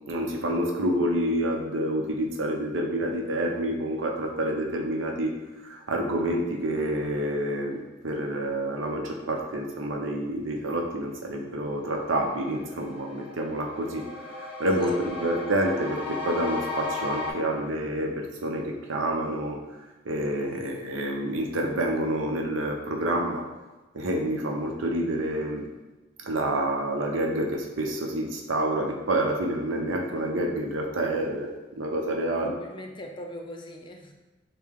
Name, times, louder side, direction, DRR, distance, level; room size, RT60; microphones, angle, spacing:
voice 1, 0.1-5.4 5.6-19.6 20.0-23.5 23.9-25.7 26.2-32.5, right 1 dB, 80° right, 1 dB, 0.7 m, -28 dB
sound 1, 11.5-11.6 12.0-17.3, left 3 dB, 10° right, 1.1 m, -36 dB
voice 2, 14.8-15.4 32.3-34.1, left 1 dB, 25° left, 2 dB, 0.5 m, -40 dB
6.5 x 2.2 x 3.5 m, 1.1 s
head